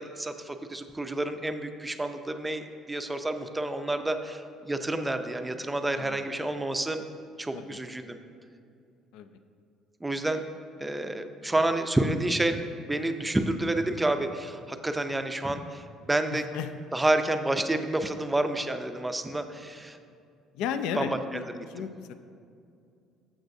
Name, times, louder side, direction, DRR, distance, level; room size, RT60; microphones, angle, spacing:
voice 1, 0.0-7.0 7.4-8.2 10.0-10.4 10.8-16.5 16.9-20.0 21.0-21.9, right 1 dB, 10° right, 7 dB, 0.4 m, -29 dB
voice 2, 16.3-16.7 20.5-21.4 21.7-22.1, left 8 dB, 80° left, 10 dB, 0.4 m, -34 dB
13.0 x 6.1 x 2.7 m, 2.4 s
cardioid pair, 135°, 0 cm